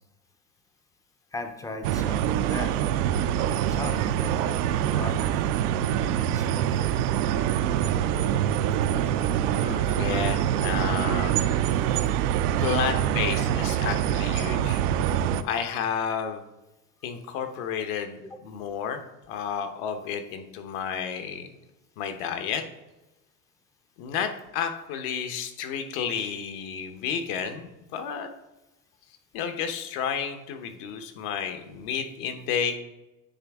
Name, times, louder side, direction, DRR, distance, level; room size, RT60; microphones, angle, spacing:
voice 1, 1.3-2.8 3.5-5.5 6.2-7.0 9.6-9.7, left 2 dB, 5° left, 6 dB, 0.5 m, -38 dB
sound 1, 1.8-15.4, right 10 dB, 65° right, 0.6 m, -25 dB
voice 2, 9.5-11.4 12.6-14.8 15.4-16.4 17.0-19.0 19.3-21.5 22.0-22.6 24.0-28.3 29.3-32.7, left 7 dB, 60° left, 7 dB, 1.1 m, -31 dB
9.6 x 3.4 x 3.6 m, 1.0 s
hypercardioid pair, 100°, 49 cm